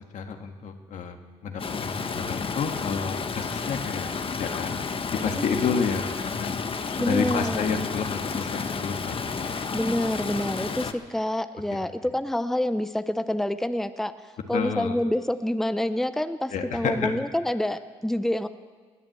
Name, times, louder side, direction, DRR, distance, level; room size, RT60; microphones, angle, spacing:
voice 1, 0.1-1.2 1.4-4.8 5.2-6.5 6.9-9.5 14.5-14.9 16.5-17.1, left 6 dB, 75° left, 5 dB, 1.7 m, -30 dB
Stream, 1.6-10.9, left 5 dB, 45° left, 1.1 m, -31 dB
voice 2, 5.4-5.8 7.0-7.7 9.7-18.5, left 1 dB, 5° left, 12 dB, 0.7 m, -27 dB
19.5 x 8.8 x 7.8 m, 1.5 s
supercardioid pair, 60°, 13 cm